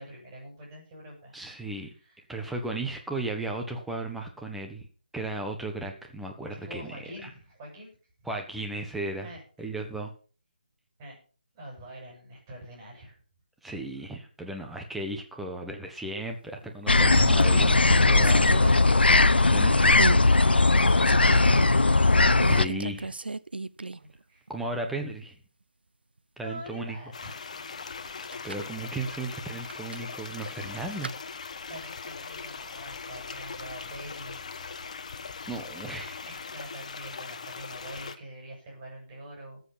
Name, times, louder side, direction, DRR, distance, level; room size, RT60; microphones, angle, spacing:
voice 1, 0.0-1.4 2.0-2.2 6.6-7.9 9.2-9.7 11.0-11.2 11.5-13.2 18.7-19.4 20.1-21.9 22.9-23.1 24.0-24.5 26.4-27.3 31.7-34.6 36.2-39.6, right 1 dB, 20° right, -2 dB, 7.1 m, -45 dB
voice 2, 1.3-1.9 2.3-4.9 5.1-7.0 7.2-7.3 8.2-9.3 9.6-10.1 13.6-18.5 19.5-20.0 22.5-23.1 24.5-25.4 26.4-27.0 28.4-31.1 35.5-36.2, right 2 dB, ahead, 2 dB, 1.4 m, -35 dB
sound 1, 16.6-17.0 17.4-19.5 20.0-20.3 20.7-21.7 22.4-24.2 24.5-24.6 28.1-28.7 29.6-31.2, right 3 dB, 85° right, 0.7 m, -35 dB
sound 2, 16.9-22.7, left 3 dB, 85° left, 0.9 m, -19 dB
sound 3, 27.1-38.2, left 5 dB, 45° left, 1.2 m, -40 dB
14.0 x 8.1 x 5.8 m, 0.39 s
figure-of-eight pair, 160°, 5 cm